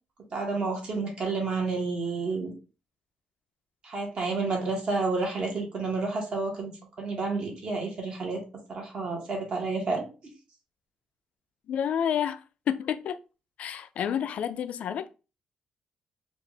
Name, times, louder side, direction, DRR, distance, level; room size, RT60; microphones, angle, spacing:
voice 1, 0.3-2.5 3.8-6.7 7.0-8.4 8.7-10.1, right 3 dB, 45° right, 1.4 m, -30 dB
voice 2, 11.7-13.2 13.6-15.1, left 9 dB, 60° left, 0.4 m, -29 dB
4.6 x 2.5 x 3.3 m
cardioid pair, 165°, 2 cm